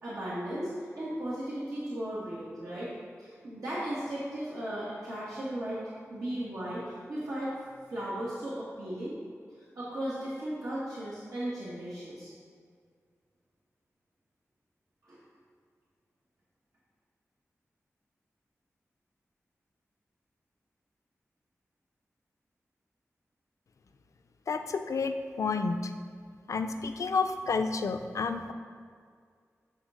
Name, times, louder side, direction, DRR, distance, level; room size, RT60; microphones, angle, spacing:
voice 1, 0.0-2.9 3.2-5.8 6.1-7.6 7.9-9.1 9.8-12.3 15.0-15.2, right 1 dB, 90° right, -10 dB, 1.6 m, -36 dB
voice 2, 24.5-25.9 26.5-28.5, left 4 dB, 75° left, 7 dB, 0.4 m, -30 dB
8.2 x 3.8 x 6.3 m, 2.1 s
wide cardioid pair, 100°, 5 cm